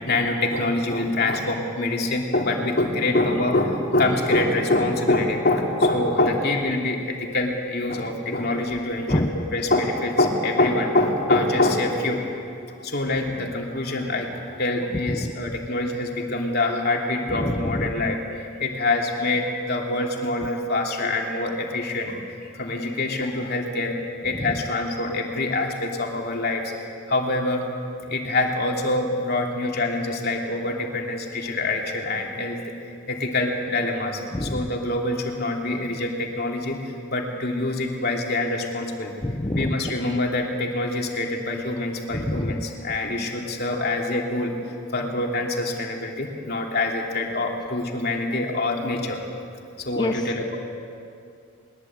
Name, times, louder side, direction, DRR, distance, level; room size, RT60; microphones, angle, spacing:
voice 1, 0.1-12.2 12.7-22.2 22.5-24.0 24.2-27.6 28.1-32.6 33.1-39.1 39.5-44.5 44.9-49.2 49.8-50.6, left 2 dB, 45° left, 1 dB, 3.0 m, -25 dB
voice 2, 9.1-9.5 15.1-15.3 17.3-17.9 24.3-24.6 34.3-34.6 39.2-39.9 42.1-42.7 50.0-50.3, left 1 dB, 20° left, 5 dB, 0.7 m, -27 dB
21.5 x 21.0 x 8.8 m, 2.5 s
head